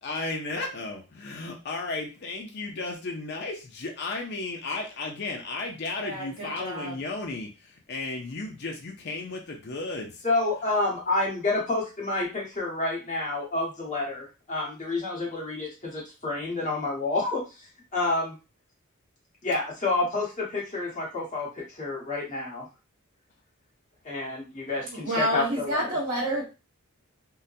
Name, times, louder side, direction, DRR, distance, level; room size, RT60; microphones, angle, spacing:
voice 1, 0.0-10.2, left 3 dB, 50° left, 1 dB, 0.5 m, -34 dB
voice 2, 6.0-7.0 24.9-26.4, right 1 dB, 70° right, -6 dB, 1.1 m, -29 dB
voice 3, 10.2-17.4 17.9-18.3 19.4-22.7 24.0-26.0, left 2 dB, 35° left, -5 dB, 1.3 m, -29 dB
3.7 x 2.1 x 2.6 m, 0.30 s
head